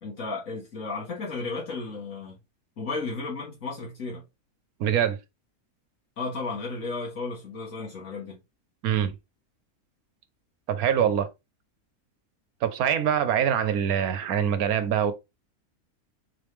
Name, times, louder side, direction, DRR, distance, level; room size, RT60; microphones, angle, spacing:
voice 1, 0.0-2.4 2.8-4.2 6.2-8.4, left 3 dB, 70° left, 1.8 m, -34 dB
voice 2, 4.8-5.2 8.8-9.1 10.7-11.3 12.6-15.1, right 9 dB, 85° right, 1.2 m, -24 dB
3.9 x 3.5 x 3.1 m
omnidirectional pair, 1.5 m